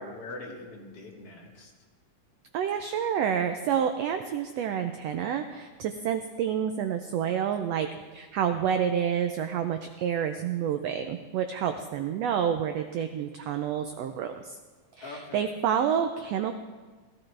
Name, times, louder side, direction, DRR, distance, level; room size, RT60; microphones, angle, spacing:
voice 1, 0.0-1.7 15.0-15.5, left 2 dB, 50° left, -3 dB, 3.2 m, -42 dB
voice 2, 2.5-14.6 14.9-16.6, right 8 dB, 80° right, 7 dB, 1.4 m, -29 dB
16.0 x 16.0 x 3.3 m, 1.4 s
omnidirectional pair, 3.6 m